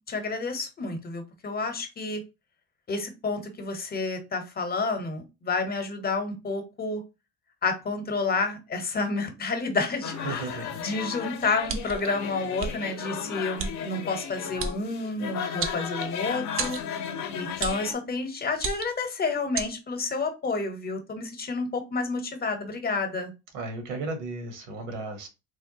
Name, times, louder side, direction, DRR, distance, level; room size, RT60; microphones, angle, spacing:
voice 1, 0.1-2.2 2.9-7.0 7.6-16.8 17.3-23.3, left 3 dB, 30° left, 6 dB, 0.9 m, -30 dB
sound 1, 10.0-17.9, left 7 dB, 60° left, 0.7 m, -35 dB
voice 2, 10.2-10.8 23.5-25.3, right 3 dB, 75° right, 6 dB, 1.1 m, -34 dB
sound 2, 11.7-12.1 12.6-12.7 13.6-13.7 14.6-14.8 15.6-16.2 16.6-16.9 17.6-17.9 18.6-19.0 19.6-19.7, right 5 dB, 40° right, 0.6 m, -31 dB
3.3 x 2.2 x 2.7 m, 0.27 s
supercardioid pair, 95°, 32 cm